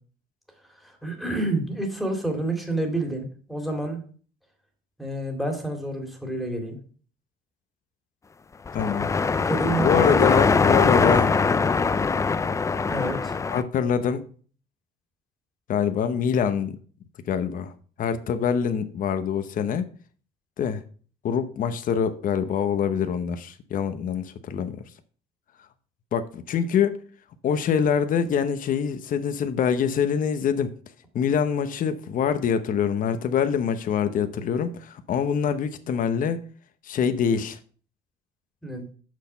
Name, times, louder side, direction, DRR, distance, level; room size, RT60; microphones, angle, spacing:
voice 1, 0.7-4.0 5.0-6.8 9.4-10.3 12.9-13.4 38.6-38.8, right 2 dB, ahead, 2.3 m, -29 dB
voice 2, 8.7-9.1 9.8-11.3 13.5-14.2 15.7-16.7 17.3-17.7 18.0-19.9 20.6-20.8 21.2-24.8 26.1-27.0 27.4-30.8 31.1-36.4 36.8-37.6, left 7 dB, 55° left, 0.9 m, -25 dB
sound 1, 8.7-13.6, left 4 dB, 20° left, 0.4 m, -22 dB
6.6 x 6.2 x 5.5 m
cardioid pair, 110°, 17 cm